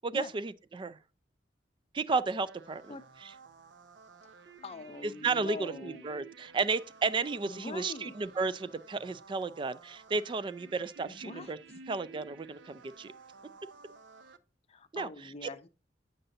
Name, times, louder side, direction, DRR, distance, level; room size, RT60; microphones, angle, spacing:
voice 1, 0.0-1.0 1.9-3.0 3.2-3.3 5.0-11.6 11.9-13.1 14.9-15.1 15.4-15.5, right 4 dB, 25° right, 0.3 m, -33 dB
sound 1, 2.5-14.4, right 4 dB, 80° right, 0.5 m, -53 dB
voice 2, 4.3-6.1 7.4-8.1 11.0-11.5 14.7-15.7, left 3 dB, 35° left, 0.5 m, -44 dB
8.8 x 6.6 x 2.7 m
head